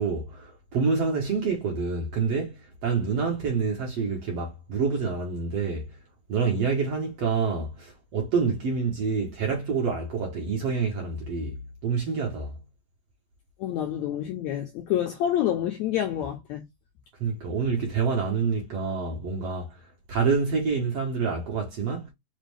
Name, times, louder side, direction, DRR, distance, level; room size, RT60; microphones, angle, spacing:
voice 1, 0.0-5.9 6.3-12.6 17.2-19.8 20.1-22.1, right 5 dB, 65° right, 1.7 m, -27 dB
voice 2, 13.6-16.6, left 11 dB, 85° left, 1.6 m, -28 dB
5.3 x 2.4 x 3.3 m
omnidirectional pair, 4.0 m